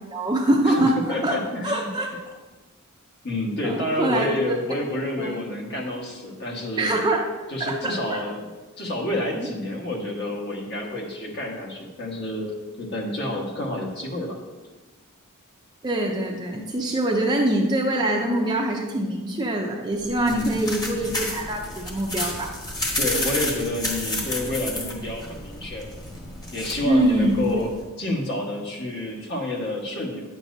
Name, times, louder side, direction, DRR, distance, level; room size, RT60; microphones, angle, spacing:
voice 1, 0.1-1.4 1.6-2.1 3.6-4.6 5.2-5.4 6.8-7.3 7.6-8.2 9.4-9.5 15.8-22.5 26.8-27.6, right 1 dB, 20° right, 0 dB, 0.6 m, -24 dB
voice 2, 0.6-1.9 3.2-6.9 7.5-8.5 8.8-14.4 20.2-20.6 23.0-25.9 26.5-27.7 28.0-30.2, left 1 dB, 50° left, 0 dB, 1.5 m, -29 dB
sound 1, 19.9-27.8, left 1 dB, 20° left, 1.2 m, -31 dB
9.2 x 7.3 x 2.7 m, 1.2 s
head